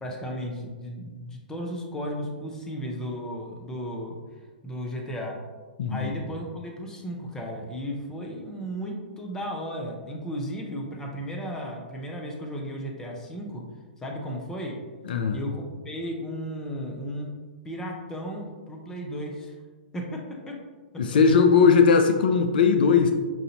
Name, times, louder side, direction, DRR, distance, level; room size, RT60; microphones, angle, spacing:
voice 1, 0.0-4.2 4.6-5.3 5.9-13.6 14.0-14.8 15.3-17.3 17.6-19.5 19.9-20.2 20.5-20.6 20.9-21.2, equal, 10° left, 0 dB, 0.7 m, -34 dB
voice 2, 5.8-6.1 15.1-15.4 21.0-23.1, left 5 dB, 70° left, 6 dB, 0.4 m, -19 dB
5.5 x 2.5 x 2.8 m, 1.4 s
hypercardioid pair, 120°, 5 cm